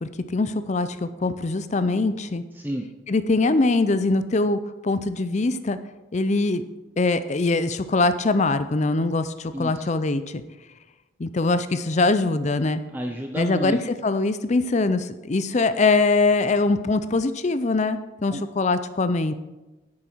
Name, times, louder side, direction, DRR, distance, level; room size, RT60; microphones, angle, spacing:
voice 1, 0.0-2.4 3.1-5.8 6.1-6.6 7.0-10.4 11.2-12.8 13.3-19.3, left 3 dB, 35° left, 12 dB, 0.5 m, -23 dB
voice 2, 2.5-2.9 9.5-9.9 12.9-13.8 18.3-18.4, equal, 10° right, 3 dB, 0.6 m, -30 dB
10.0 x 8.6 x 4.5 m, 1.1 s
head